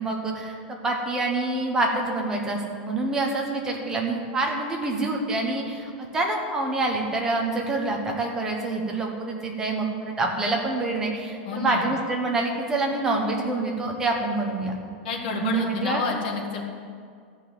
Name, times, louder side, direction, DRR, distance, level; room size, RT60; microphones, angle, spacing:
voice 1, 0.0-14.7 15.3-16.0, right 2 dB, 10° right, 0 dB, 1.2 m, -26 dB
voice 2, 11.5-11.9 15.0-16.6, left 4 dB, 55° left, 1 dB, 1.9 m, -29 dB
13.5 x 5.5 x 8.2 m, 2.2 s
supercardioid pair, 175°, 6 cm